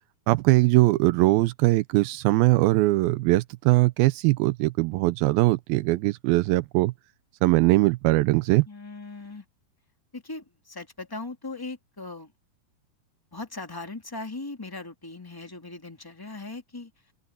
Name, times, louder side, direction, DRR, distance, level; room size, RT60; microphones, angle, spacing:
voice 1, 0.3-6.9 7.4-8.7, right 20 dB, 80° right, 2.2 m, -21 dB
voice 2, 8.6-9.4 10.1-12.3 13.3-16.9, left 3 dB, 10° left, 1.5 m, -39 dB
open air
omnidirectional pair, 4.6 m